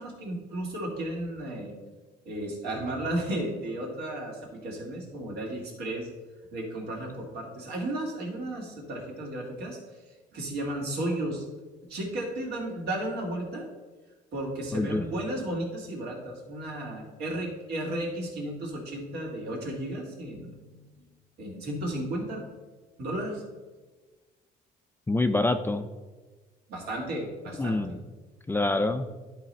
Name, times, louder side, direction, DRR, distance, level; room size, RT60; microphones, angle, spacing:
voice 1, 0.0-1.7 2.3-6.1 6.5-9.8 10.3-11.4 11.9-13.7 14.3-20.8 21.4-22.4 23.0-23.4 26.7-28.0, right 1 dB, 75° right, -1 dB, 2.3 m, -34 dB
voice 2, 14.7-15.0 25.1-25.9 27.6-28.0 28.5-29.1, left 2 dB, 15° left, 8 dB, 0.4 m, -26 dB
11.0 x 4.0 x 4.3 m, 1.3 s
cardioid pair, 110°, 17 cm